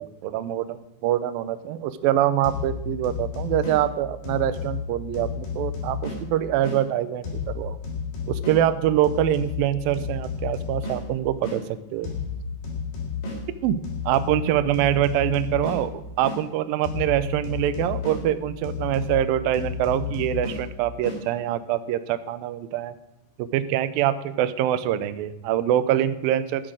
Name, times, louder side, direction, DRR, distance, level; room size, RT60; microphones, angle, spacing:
voice 1, 0.0-7.8 8.3-11.6 11.9-12.1 13.6-13.8 14.1-15.9 16.2-22.9 23.4-26.7, right 11 dB, 80° right, 12 dB, 2.2 m, -24 dB
sound 1, 2.4-6.8 7.2-11.6 12.0-16.4 16.8-21.2, left 5 dB, 55° left, 5.0 m, -32 dB
11.5 x 9.9 x 6.4 m, 0.89 s
omnidirectional pair, 4.9 m